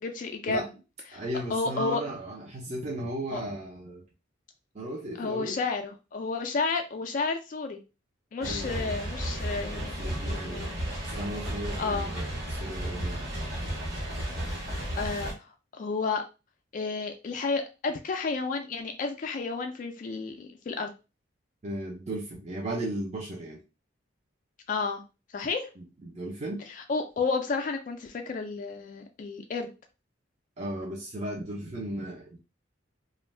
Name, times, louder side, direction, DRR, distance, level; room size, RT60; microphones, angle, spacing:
voice 1, 0.0-0.6 1.1-1.2 1.5-2.0 3.3-3.4 5.2-7.8 8.3-9.9 10.3-11.0 11.8-12.1 14.6-15.3 15.7-16.2 16.7-20.9 24.7-25.0 25.3-25.7 26.9-29.7, left 4 dB, 45° left, 5 dB, 0.3 m, -31 dB
voice 2, 1.1-4.0 4.7-5.6 8.4-9.0 9.9-10.7 11.2-13.2 21.6-23.6 25.8-26.6 30.6-32.4, right 1 dB, 35° right, -3 dB, 0.6 m, -36 dB
sound 1, 8.4-15.3, right 1 dB, 55° right, 1.3 m, -33 dB
2.5 x 2.2 x 3.2 m, 0.30 s
head